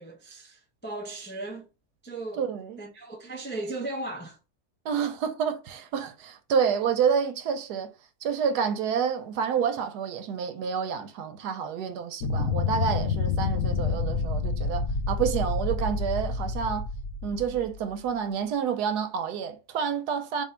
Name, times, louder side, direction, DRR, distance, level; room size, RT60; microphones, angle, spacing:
voice 1, 0.0-1.7 2.0-2.4 2.8-4.4, right 2 dB, 15° left, 0.3 m, -36 dB
voice 2, 2.4-2.8 4.8-7.9 8.2-16.9 17.2-20.4, right 7 dB, 90° right, 1.2 m, -29 dB
sound 1, 12.2-18.0, left 4 dB, 65° left, 1.0 m, -28 dB
3.6 x 2.7 x 4.3 m
omnidirectional pair, 1.7 m